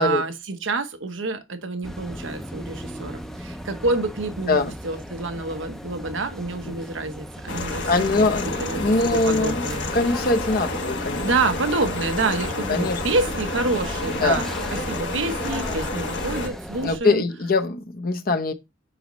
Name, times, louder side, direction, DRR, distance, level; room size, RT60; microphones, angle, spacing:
voice 1, 0.0-9.9 11.2-17.2, right 3 dB, 90° right, 1.0 m, -28 dB
sound 1, 1.8-17.0, equal, ahead, 0.5 m, -37 dB
sound 2, 7.5-16.5, left 2 dB, 70° left, 1.3 m, -30 dB
voice 2, 7.9-9.7 9.9-11.3 12.7-13.0 14.1-14.5 16.8-18.5, left 3 dB, 50° left, 0.8 m, -22 dB
7.7 x 5.1 x 3.1 m
head